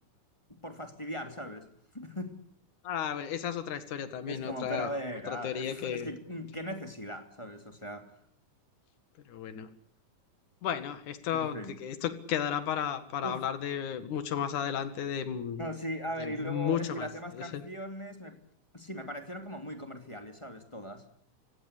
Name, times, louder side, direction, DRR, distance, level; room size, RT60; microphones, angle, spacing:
voice 1, 0.6-1.7 1.9-2.3 4.3-8.1 11.3-11.7 13.2-13.4 15.6-18.4 18.7-21.1, equal, 10° left, 5 dB, 2.5 m, -39 dB
voice 2, 2.8-4.9 5.3-6.1 9.3-9.7 10.6-15.7 16.2-17.1 17.3-17.6, left 9 dB, 75° left, 10 dB, 3.3 m, -33 dB
29.5 x 16.5 x 8.4 m, 0.63 s
omnidirectional pair, 3.6 m